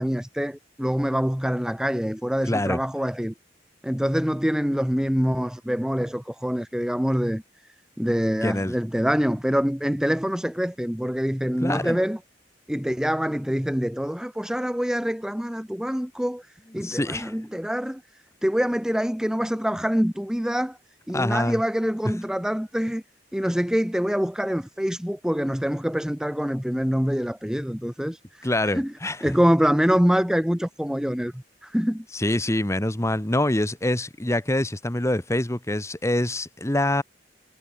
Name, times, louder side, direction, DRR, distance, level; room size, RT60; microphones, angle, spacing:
voice 1, 0.0-3.3 3.8-7.4 8.0-12.2 12.7-16.5 16.7-18.0 18.4-20.8 21.1-23.0 23.3-28.5 28.7-28.9 29.2-32.0, equal, 5° right, 0.9 m, -25 dB
voice 2, 2.5-2.8 8.4-8.7 11.6-12.0 16.7-17.3 21.1-21.6 28.4-29.3 32.1-37.0, left 1 dB, 15° left, 1.3 m, -25 dB
head